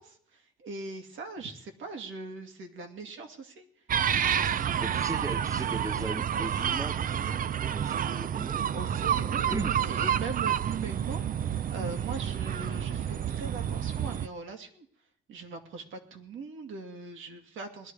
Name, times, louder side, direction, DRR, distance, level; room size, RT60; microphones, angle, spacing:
voice 1, 0.0-3.7 4.3-4.8 8.7-11.2 11.7-14.9 15.3-17.9, right 3 dB, 80° right, 2.6 m, -41 dB
sound 1, 3.9-14.3, right 9 dB, 45° right, 0.5 m, -29 dB
voice 2, 4.8-9.1 9.5-9.9, right 2 dB, 15° right, 0.7 m, -38 dB
20.0 x 12.0 x 4.8 m
cardioid pair, 90°, 20 cm